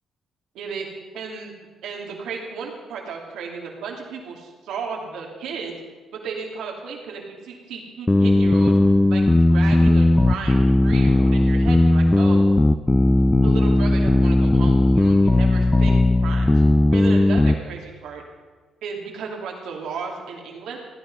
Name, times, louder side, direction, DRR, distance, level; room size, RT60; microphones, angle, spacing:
voice 1, 0.5-0.9 1.1-1.5 1.8-5.8 6.1-8.7 9.1-12.5 13.1-16.6 16.9-18.2 18.8-20.8, right 5 dB, 85° right, 0 dB, 2.8 m, -34 dB
sound 1, 8.1-17.6, left 1 dB, 15° left, 0.5 m, -17 dB
16.0 x 10.5 x 5.6 m, 1.5 s
cardioid pair, 90°, 0 cm